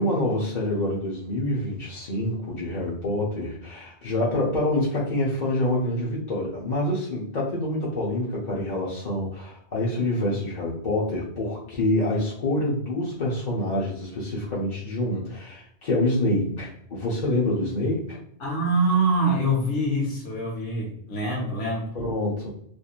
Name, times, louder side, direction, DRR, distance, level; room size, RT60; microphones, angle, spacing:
voice 1, 0.0-18.2 21.9-22.5, left 1 dB, 45° left, -5 dB, 0.7 m, -26 dB
voice 2, 18.4-21.9, right 1 dB, 85° left, -3 dB, 1.1 m, -24 dB
3.0 x 2.5 x 2.3 m, 0.68 s
omnidirectional pair, 1.2 m